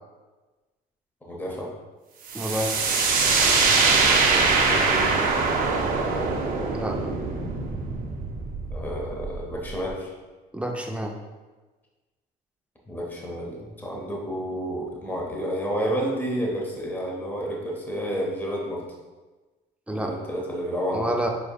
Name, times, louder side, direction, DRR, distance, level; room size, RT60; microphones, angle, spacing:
voice 1, 1.2-1.8 4.3-5.3 8.7-10.1 12.9-18.9 19.9-21.2, equal, 10° left, -2 dB, 0.8 m, -30 dB
voice 2, 2.3-2.8 6.7-7.0 10.5-11.1 19.9-20.1 20.9-21.3, right 1 dB, 5° right, 2 dB, 0.5 m, -28 dB
sound 1, 2.3-9.9, right 4 dB, 55° right, 0.6 m, -23 dB
5.1 x 3.3 x 2.3 m, 1.2 s
cardioid pair, 110°, 17 cm